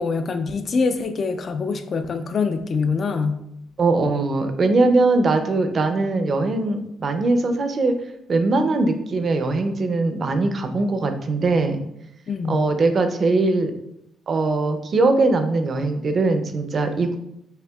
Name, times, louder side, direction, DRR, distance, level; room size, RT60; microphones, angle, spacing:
voice 1, 0.0-3.4 12.3-12.7, left 4 dB, 50° left, 8 dB, 0.4 m, -24 dB
voice 2, 3.8-7.9 8.3-11.8 12.5-13.7 14.3-17.2, right 3 dB, 45° right, 7 dB, 0.6 m, -21 dB
6.5 x 2.7 x 2.3 m, 0.80 s
cardioid pair, 90°, 0 cm